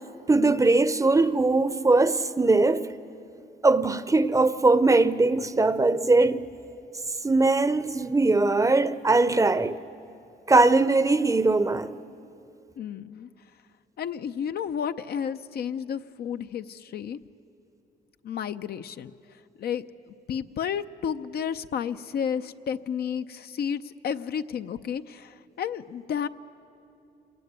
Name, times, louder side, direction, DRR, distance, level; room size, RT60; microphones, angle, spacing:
voice 1, 0.3-2.8 3.6-6.4 7.2-9.8 10.5-12.0, right 3 dB, 20° right, 0.7 m, -21 dB
voice 2, 12.8-13.3 14.0-17.2 18.2-19.1 19.6-26.3, left 8 dB, 65° left, 0.7 m, -32 dB
26.5 x 18.5 x 9.5 m
cardioid pair, 100°, 17 cm